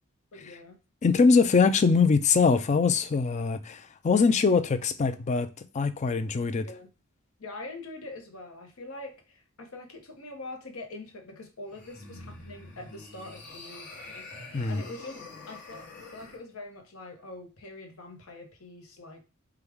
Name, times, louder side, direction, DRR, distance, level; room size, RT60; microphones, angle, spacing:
voice 1, 0.3-0.8 6.6-6.9 7.4-14.3 14.7-19.2, left 2 dB, 75° left, 4 dB, 0.9 m, -44 dB
voice 2, 1.0-6.7 14.5-14.8, left 5 dB, 35° left, 10 dB, 0.3 m, -23 dB
sound 1, 11.7-16.4, left 2 dB, 55° left, 1.2 m, -45 dB
4.8 x 2.3 x 3.4 m, 0.32 s
head